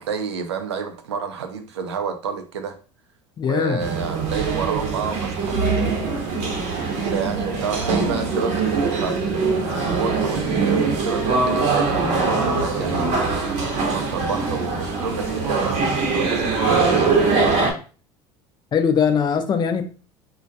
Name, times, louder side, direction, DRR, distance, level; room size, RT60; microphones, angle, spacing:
voice 1, 0.0-2.8 3.4-6.1 6.8-13.2 13.7-17.7, right 5 dB, 90° right, 0.4 m, -29 dB
voice 2, 3.4-3.8 18.7-19.8, left 7 dB, 30° left, 0.4 m, -20 dB
sound 1, 3.8-17.7, right 4 dB, 60° right, 0.7 m, -22 dB
2.2 x 2.1 x 2.6 m
hypercardioid pair, 80°, 14 cm